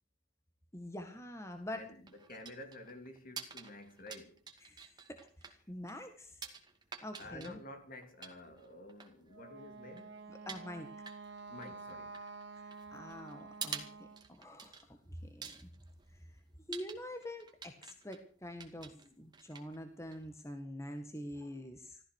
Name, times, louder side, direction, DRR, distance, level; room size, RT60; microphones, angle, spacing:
voice 1, 0.7-1.9 4.6-6.4 7.0-7.6 10.3-10.9 12.9-15.7 16.1-16.4 16.7-22.0, left 1 dB, 15° left, 1.8 m, -46 dB
sound 1, 1.5-20.5, right 6 dB, 20° right, 2.2 m, -50 dB
voice 2, 1.7-4.4 7.2-10.2 11.5-12.2, left 1 dB, 45° left, 3.0 m, -50 dB
Wind instrument woodwind instrument, 9.3-14.3, right 4 dB, 65° right, 1.8 m, -49 dB
15.0 x 14.0 x 6.4 m
head